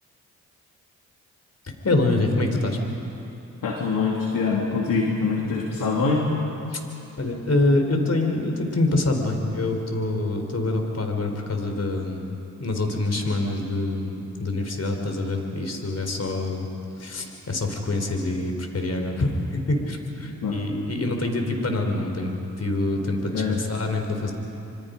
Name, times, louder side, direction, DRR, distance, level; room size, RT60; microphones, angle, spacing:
voice 1, 1.6-2.8 6.7-6.8 7.2-12.3 12.6-16.7 17.0-24.3, left 2 dB, 45° left, 4 dB, 4.3 m, -25 dB
voice 2, 3.6-6.2 20.4-20.6 23.3-23.6, left 4 dB, 70° left, -2 dB, 3.0 m, -24 dB
26.0 x 25.0 x 5.3 m, 2.8 s
supercardioid pair, 50°, 34 cm